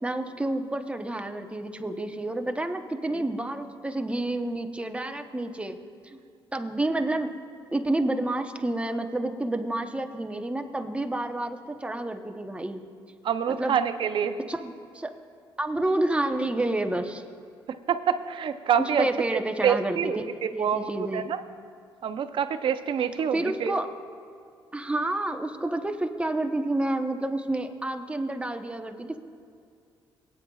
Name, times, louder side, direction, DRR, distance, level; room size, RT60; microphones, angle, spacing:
voice 1, 0.0-5.8 6.0-6.2 6.5-7.3 7.7-12.8 13.5-13.7 14.5-15.1 15.6-17.2 19.0-20.2 20.5-21.3 23.3-23.9 24.7-29.2, right 1 dB, 10° right, 5 dB, 0.9 m, -29 dB
voice 2, 13.2-14.4 17.9-19.1 19.6-21.4 22.0-23.8, right 8 dB, 60° right, 9 dB, 0.7 m, -26 dB
19.0 x 9.3 x 2.4 m, 2.3 s
cardioid pair, 75°, 10 cm